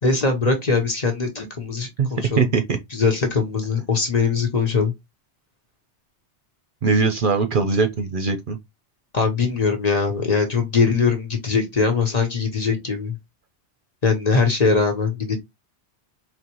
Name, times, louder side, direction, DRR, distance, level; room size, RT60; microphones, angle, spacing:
voice 1, 0.0-2.5 2.9-4.9 9.1-13.2 14.0-15.4, left 4 dB, 40° left, 1.0 m, -21 dB
voice 2, 2.0-2.8 6.8-8.6, right 4 dB, 55° right, 0.8 m, -21 dB
4.3 x 3.1 x 3.0 m
omnidirectional pair, 1.2 m